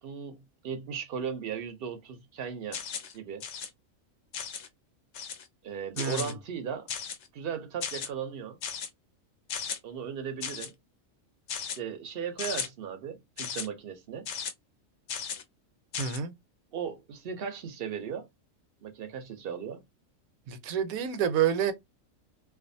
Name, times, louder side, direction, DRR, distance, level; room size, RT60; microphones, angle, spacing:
voice 1, 0.0-2.8 3.1-3.4 5.6-6.9 7.3-8.6 9.8-10.7 11.6-14.3 16.7-18.3 18.8-19.8, right 7 dB, 55° right, 0.6 m, -37 dB
sound 1, 2.7-3.1 3.4-3.7 4.3-4.7 5.1-5.5 6.0-6.3 6.9-7.3 7.8-8.1 8.6-8.9 9.5-9.8 10.4-10.7 11.5-11.8 12.4-12.7 13.4-13.7 14.3-14.5 15.1-15.4 15.9-16.2, left 7 dB, 65° left, 0.7 m, -36 dB
voice 2, 6.0-6.3 16.0-16.3 20.5-21.7, right 8 dB, 80° right, 1.0 m, -28 dB
2.5 x 2.3 x 2.6 m
omnidirectional pair, 1.5 m